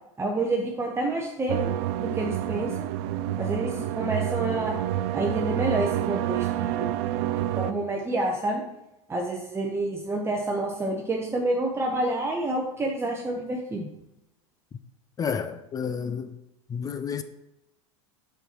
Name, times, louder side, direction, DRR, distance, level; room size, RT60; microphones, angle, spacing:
voice 1, 0.2-1.7 2.0-2.9 3.4-4.7 5.1-6.9 7.6-8.6 9.1-13.9, right 2 dB, 15° right, 0.9 m, -28 dB
sound 1, 1.5-7.7, right 12 dB, 55° right, 0.4 m, -28 dB
voice 2, 15.2-16.3 16.7-17.2, left 6 dB, 25° left, 0.4 m, -30 dB
6.7 x 5.9 x 3.0 m
hypercardioid pair, 95°, 16 cm